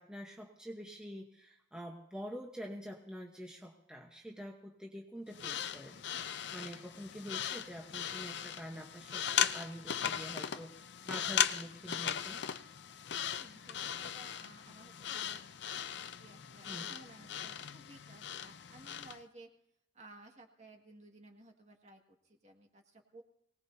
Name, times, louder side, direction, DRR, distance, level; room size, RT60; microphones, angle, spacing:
voice 1, 0.0-12.4 16.7-16.9, equal, 5° right, 0 dB, 1.0 m, -46 dB
sound 1, 5.3-19.2, left 9 dB, 60° left, 0.5 m, -38 dB
voice 2, 13.4-15.4 16.2-19.5 19.9-23.2, right 2 dB, 35° right, 3 dB, 1.9 m, -57 dB
23.5 x 19.0 x 2.7 m, 0.77 s
head